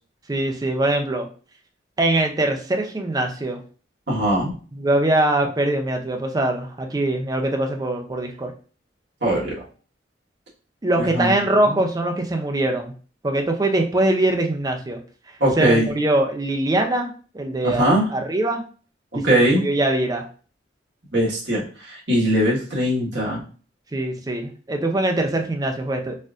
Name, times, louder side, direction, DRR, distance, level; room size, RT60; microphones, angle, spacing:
voice 1, 0.3-1.3 2.0-3.6 4.7-8.5 10.8-12.9 13.2-15.0 15.6-18.6 19.1-20.3 23.9-26.2, right 1 dB, 20° right, 3 dB, 0.4 m, -22 dB
voice 2, 4.1-4.5 9.2-9.6 11.1-11.3 15.4-15.9 17.6-18.0 19.2-19.6 21.1-23.4, right 1 dB, 70° right, -5 dB, 1.5 m, -20 dB
4.2 x 2.5 x 2.4 m, 0.39 s
head